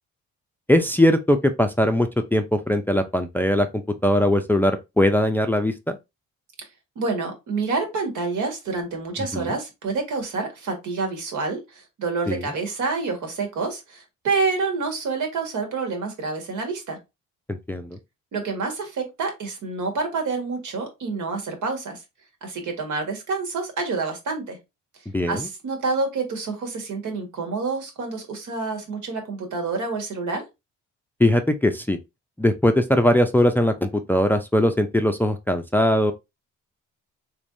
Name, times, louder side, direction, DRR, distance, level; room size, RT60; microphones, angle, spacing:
voice 1, 0.7-6.0 9.3-9.5 12.3-12.5 17.5-17.9 25.1-25.5 31.2-32.0 32.4-36.1, left 1 dB, 5° left, 0.4 m, -20 dB
voice 2, 6.9-17.0 18.3-22.0 22.4-24.6 25.3-30.4, right 4 dB, 75° right, 1.6 m, -28 dB
3.5 x 3.3 x 2.6 m
cardioid pair, 90°, 30 cm